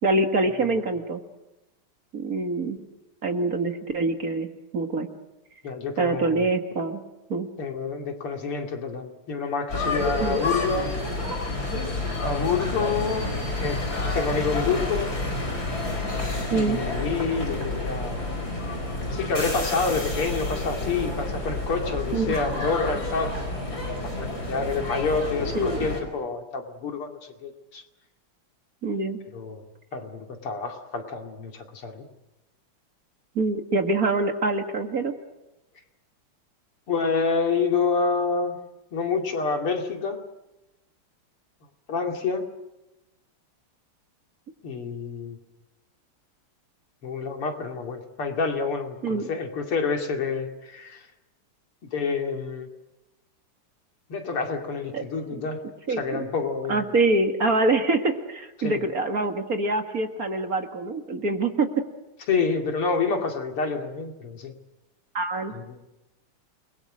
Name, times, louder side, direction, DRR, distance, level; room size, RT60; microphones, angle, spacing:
voice 1, 0.0-1.2 2.1-2.8 3.2-4.5 4.7-5.1 6.0-7.0 7.3-7.5 10.2-10.4 16.5-16.8 22.1-22.4 25.5-25.9 28.8-29.2 33.4-35.1 49.0-49.3 54.9-55.0 55.9-56.3 56.7-61.7 65.1-65.5, right 2 dB, 45° right, 5 dB, 2.1 m, -25 dB
voice 2, 5.6-6.5 7.6-10.9 12.2-13.8 14.1-15.2 16.5-18.3 19.1-23.4 24.0-27.8 29.3-29.6 29.9-32.1 36.9-38.6 38.9-40.2 41.9-42.5 44.6-45.4 47.0-51.1 51.9-52.7 54.1-55.6 56.0-56.9 58.6-58.8 62.3-64.5 65.5-65.8, left 4 dB, 80° left, 3 dB, 3.5 m, -28 dB
sound 1, 9.7-26.0, left 2 dB, 45° left, 5.3 m, -29 dB
29.0 x 21.5 x 6.4 m, 0.98 s
omnidirectional pair, 2.4 m